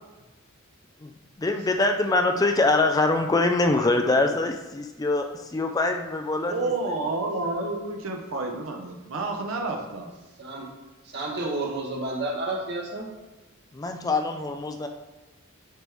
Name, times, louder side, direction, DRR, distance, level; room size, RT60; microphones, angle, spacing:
voice 1, 1.4-6.7 13.7-14.9, left 2 dB, 15° left, 5 dB, 0.3 m, -24 dB
voice 2, 6.5-10.1, right 2 dB, 70° right, 2 dB, 0.8 m, -29 dB
voice 3, 11.0-13.1, right 2 dB, 50° right, -1 dB, 1.2 m, -30 dB
9.1 x 3.1 x 3.4 m, 1.2 s
head